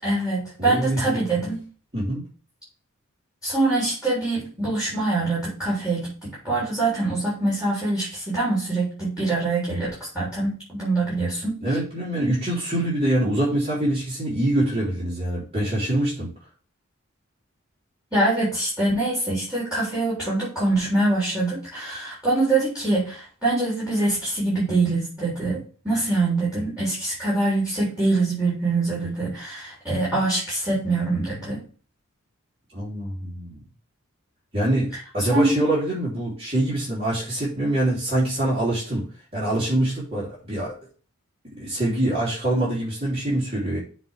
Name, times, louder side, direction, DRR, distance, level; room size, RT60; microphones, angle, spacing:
voice 1, 0.0-1.6 3.4-6.1 6.4-11.6 18.1-31.6 35.2-35.5, right 2 dB, 5° right, -7 dB, 3.8 m, -24 dB
voice 2, 0.6-1.2 1.9-2.2 11.6-16.3 32.7-33.6 34.5-39.1 39.3-40.8 41.6-43.8, right 1 dB, 25° right, -8 dB, 3.5 m, -24 dB
7.6 x 3.6 x 6.5 m, 0.39 s
head